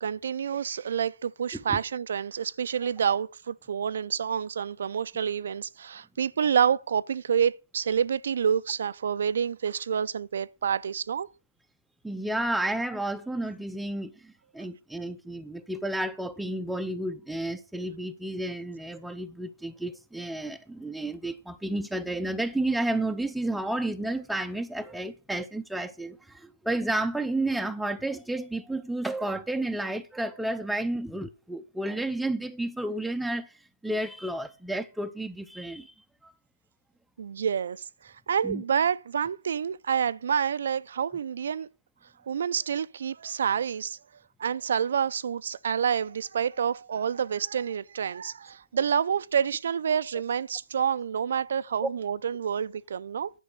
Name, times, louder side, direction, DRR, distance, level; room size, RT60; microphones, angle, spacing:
voice 1, 0.0-11.3 37.2-41.7 42.3-44.0 44.4-53.3, right 7 dB, 55° right, 0.4 m, -28 dB
voice 2, 12.0-33.5 33.8-35.9 36.2-36.3 38.4-38.6 51.8-51.9, right 1 dB, ahead, 0.5 m, -31 dB
10.0 x 5.3 x 6.5 m
hypercardioid pair, 155°, 0 cm